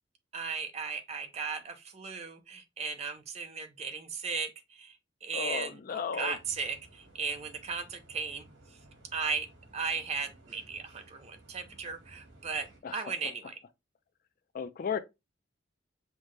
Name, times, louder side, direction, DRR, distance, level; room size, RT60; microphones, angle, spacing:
voice 1, 0.3-8.5 9.1-9.5 9.7-13.6, right 5 dB, 35° right, 0.6 m, -36 dB
voice 2, 5.3-6.4 12.8-13.1 14.5-15.0, left 6 dB, 45° left, 0.3 m, -34 dB
sound 1, 6.3-12.8, right 1 dB, 80° right, 1.8 m, -57 dB
5.5 x 2.1 x 3.1 m
head